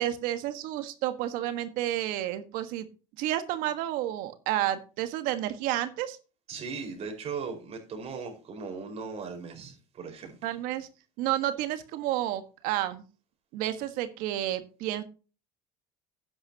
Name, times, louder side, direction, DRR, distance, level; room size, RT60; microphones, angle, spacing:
voice 1, 0.0-2.9 3.2-6.2 10.4-10.9 11.2-13.0 13.5-15.0, right 13 dB, 75° right, 1.4 m, -30 dB
voice 2, 6.5-10.5, right 5 dB, 45° right, 4.7 m, -38 dB
11.5 x 9.6 x 2.8 m
supercardioid pair, 100°, 15 cm